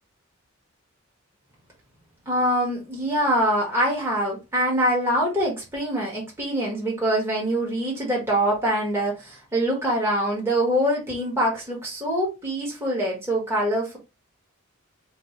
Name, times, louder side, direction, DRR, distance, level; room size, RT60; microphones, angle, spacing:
voice 1, 2.3-14.0, equal, 10° right, 1.3 m, -24 dB
4.3 x 2.6 x 3.1 m
head